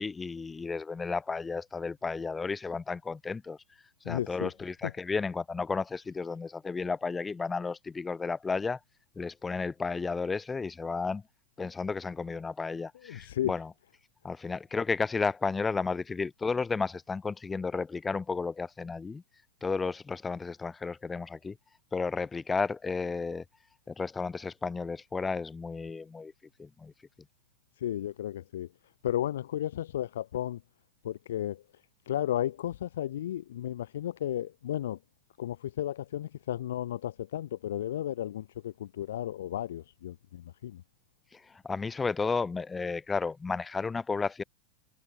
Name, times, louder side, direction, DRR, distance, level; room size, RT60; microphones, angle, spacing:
voice 1, 0.0-3.6 4.1-8.8 9.2-11.2 11.6-13.7 14.2-19.2 19.6-21.6 21.9-23.4 23.9-26.3 26.6-26.9 41.3-44.4, left 4 dB, 15° left, 0.7 m, -33 dB
voice 2, 4.0-4.5 13.1-13.5 27.8-28.7 29.0-30.6 31.0-31.6 32.1-35.0 35.4-40.8, left 12 dB, 60° left, 0.6 m, -33 dB
figure-of-eight pair, 90°, 0 cm